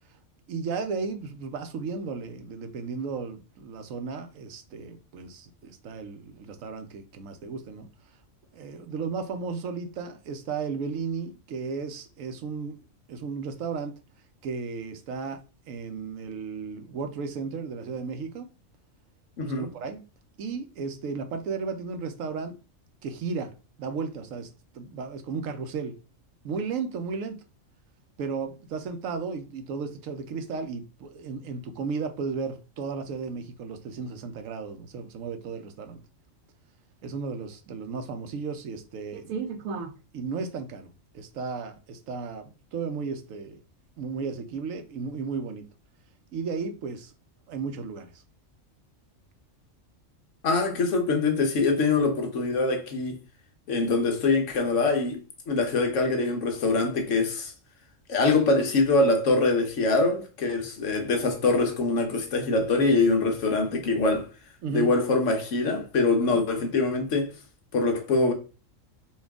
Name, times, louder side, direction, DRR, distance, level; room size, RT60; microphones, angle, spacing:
voice 1, 0.5-7.9 8.5-12.8 13.1-14.0 14.4-15.4 15.7-18.5 19.4-20.0 20.4-22.6 23.0-23.5 23.8-26.0 26.4-27.4 28.2-36.0 37.0-43.6 44.0-45.7 46.3-47.1 47.5-48.2 64.6-64.9 66.3-66.4, right 5 dB, 80° right, 1.1 m, -34 dB
voice 2, 19.4-19.7 50.4-53.2 53.7-55.2 55.5-57.5 58.1-64.3 64.7-67.3 67.7-68.3, left 3 dB, 70° left, 1.2 m, -24 dB
4.3 x 2.4 x 3.5 m
omnidirectional pair, 1.3 m